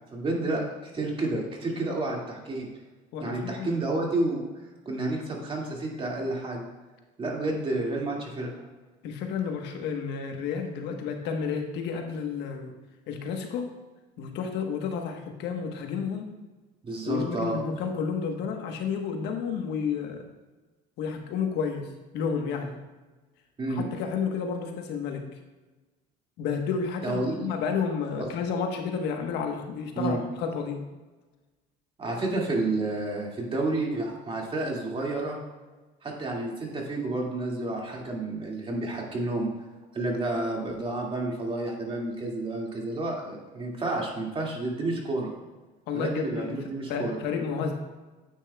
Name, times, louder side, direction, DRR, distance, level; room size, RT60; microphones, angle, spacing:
voice 1, 0.1-2.7 3.2-4.4 4.9-6.7 7.2-8.5 16.8-17.6 23.6-23.9 27.0-27.5 28.2-28.3 30.0-30.2 32.0-35.4 36.0-39.5 39.9-45.3 45.9-47.2, right 2 dB, 30° right, -1 dB, 2.2 m, -30 dB
voice 2, 3.1-3.7 9.0-12.7 13.1-13.7 14.2-16.3 17.0-20.2 21.0-21.9 22.1-22.8 23.7-25.2 26.4-30.8 45.9-46.6 46.9-47.7, left 6 dB, 65° left, 3 dB, 1.2 m, -31 dB
9.6 x 8.6 x 2.3 m, 1.2 s
supercardioid pair, 105°, 19 cm